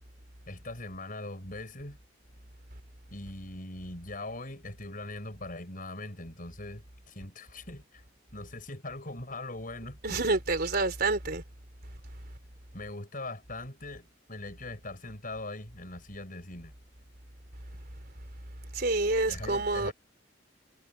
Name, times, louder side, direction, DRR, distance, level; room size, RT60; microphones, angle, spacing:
voice 1, 0.5-2.0 3.1-8.0 8.3-10.2 12.7-16.7 19.2-19.9, left 2 dB, 50° left, 7.7 m, -41 dB
voice 2, 10.0-11.4 18.7-19.9, right 3 dB, 55° right, 3.9 m, -28 dB
head